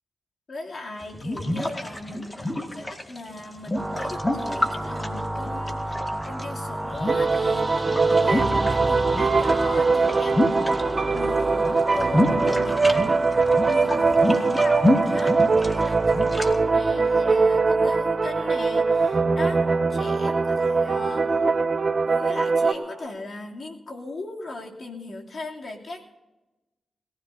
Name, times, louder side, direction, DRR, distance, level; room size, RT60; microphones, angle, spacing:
voice 1, 0.5-10.6 11.1-19.6 19.9-21.5 22.1-26.1, left 2 dB, 60° left, 0 dB, 2.9 m, -38 dB
sound 1, 1.0-6.4 6.9-8.7 9.0-11.3 11.5-16.5, left 1 dB, 25° left, 2.0 m, -28 dB
sound 2, 3.8-23.0, right 1 dB, 15° right, 1.1 m, -34 dB
sound 3, 7.1-22.7, right 4 dB, 45° right, 1.0 m, -22 dB
21.0 x 16.0 x 2.8 m, 1.0 s
supercardioid pair, 45°, 0 cm